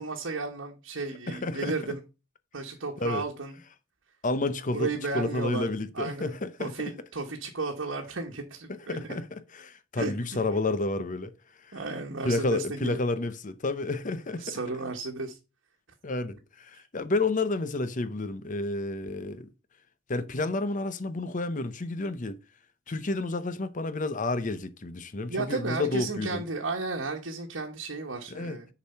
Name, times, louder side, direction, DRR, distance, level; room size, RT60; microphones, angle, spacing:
voice 1, 0.0-2.0 2.5-3.5 4.7-5.6 5.9-6.3 6.6-9.2 10.0-10.1 11.7-13.0 14.4-15.4 25.3-28.7, right 3 dB, 75° right, 1.3 m, -33 dB
voice 2, 1.3-1.7 3.0-3.3 4.2-4.9 5.1-6.7 8.9-11.3 11.6-11.8 12.2-14.6 16.0-19.5 20.1-22.4 22.9-26.4 28.3-28.6, left 2 dB, 40° left, 0.8 m, -30 dB
6.9 x 4.8 x 5.6 m
head